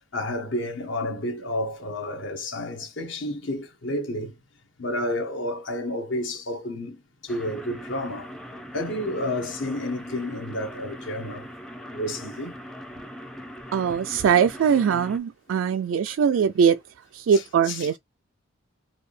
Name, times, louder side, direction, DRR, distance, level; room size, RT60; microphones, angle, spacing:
voice 1, 0.1-4.3 4.8-8.3 8.7-11.5 11.9-12.5 17.7-17.9, left 1 dB, 70° left, 1.3 m, -30 dB
sound 1, 7.3-15.2, equal, 5° left, 0.6 m, -40 dB
voice 2, 13.7-16.8 17.1-18.0, right 7 dB, 75° right, 0.3 m, -21 dB
4.7 x 2.7 x 3.2 m
head